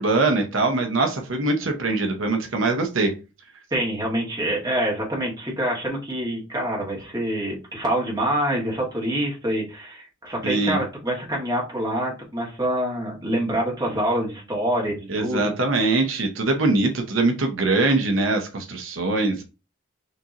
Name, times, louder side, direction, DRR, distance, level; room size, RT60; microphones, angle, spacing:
voice 1, 0.0-3.1 10.4-10.8 15.1-19.4, right 3 dB, 75° right, 4 dB, 0.8 m, -22 dB
voice 2, 3.7-15.5, right 1 dB, 20° right, -3 dB, 1.4 m, -26 dB
6.6 x 2.9 x 2.5 m, 0.31 s
head